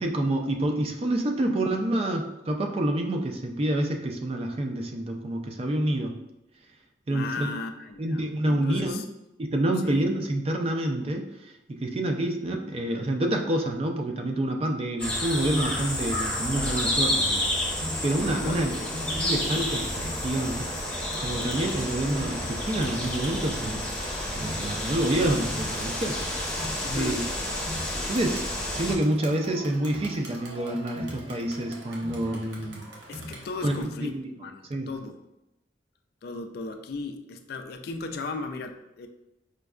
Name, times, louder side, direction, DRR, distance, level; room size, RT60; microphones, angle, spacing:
voice 1, 0.0-6.2 7.1-7.5 8.0-9.0 9.4-18.7 19.0-20.6 21.2-23.9 24.3-26.2 26.6-27.2 28.1-28.5 28.7-32.9 33.6-34.3 34.7-34.9, right 1 dB, 35° right, 3 dB, 0.4 m, -28 dB
voice 2, 7.1-9.0 9.8-10.0 18.4-18.9 26.8-27.2 33.1-34.6 34.9-35.2 36.2-39.1, left 3 dB, 55° left, 6 dB, 0.3 m, -36 dB
sound 1, 15.0-28.9, left 1 dB, 5° left, 0.7 m, -30 dB
Crowd, 17.8-33.8, equal, 65° right, 0.7 m, -43 dB
5.1 x 2.2 x 2.3 m, 0.91 s
head